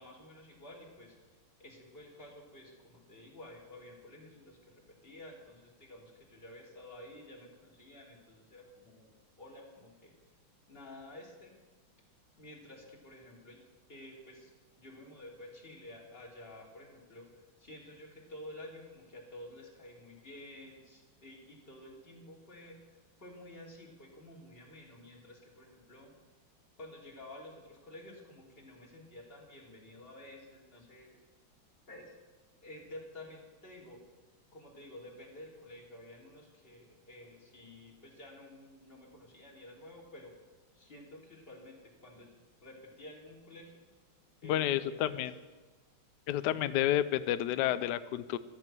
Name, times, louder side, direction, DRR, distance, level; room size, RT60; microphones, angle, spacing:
voice 1, 0.0-9.1 9.4-10.1 10.7-11.6 12.4-13.6 13.9-26.1 26.8-31.2 31.9-32.1 32.6-34.0 34.5-40.3 40.7-42.3 42.6-43.8 44.4-45.3, left 1 dB, 25° left, -2 dB, 3.2 m, -51 dB
voice 2, 44.4-45.3 46.3-48.4, left 12 dB, 70° left, 14 dB, 1.1 m, -30 dB
13.5 x 12.5 x 6.1 m, 1.3 s
omnidirectional pair, 2.3 m